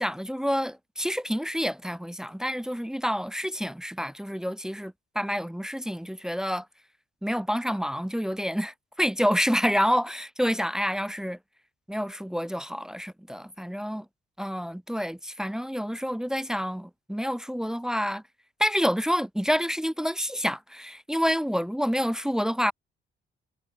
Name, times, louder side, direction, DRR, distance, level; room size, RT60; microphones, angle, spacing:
voice 1, 0.0-6.7 7.2-11.4 11.9-14.1 14.4-18.2 18.6-22.7, equal, 5° right, 0.7 m, -28 dB
cardioid pair, 90°, 20 cm